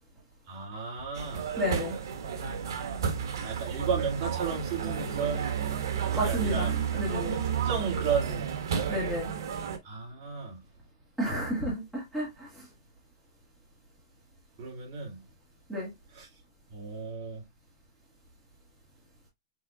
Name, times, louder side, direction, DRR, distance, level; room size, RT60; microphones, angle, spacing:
voice 1, 0.5-1.5 3.4-5.6 6.1-6.7 7.3-8.5 9.8-10.6 14.6-15.2 16.1-16.3 16.7-17.4, right 5 dB, 35° right, 3.0 m, -33 dB
sound 1, 1.1-9.8, right 8 dB, 70° right, 1.4 m, -32 dB
voice 2, 1.6-2.0 6.1-7.3 8.9-9.3 11.2-12.5 15.7-15.9, equal, ahead, 2.1 m, -31 dB
6.7 x 3.4 x 2.3 m
supercardioid pair, 165°, 2 cm